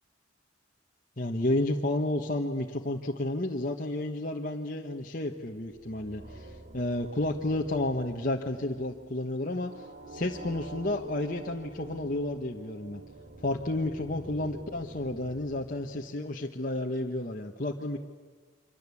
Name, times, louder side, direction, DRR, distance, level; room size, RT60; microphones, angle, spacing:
voice 1, 1.2-13.0 13.4-18.0, left 1 dB, 40° left, 0 dB, 1.2 m, -31 dB
sound 1, 5.4-16.6, right 2 dB, 45° right, 2.2 m, -47 dB
26.5 x 25.0 x 8.5 m, 1.4 s
head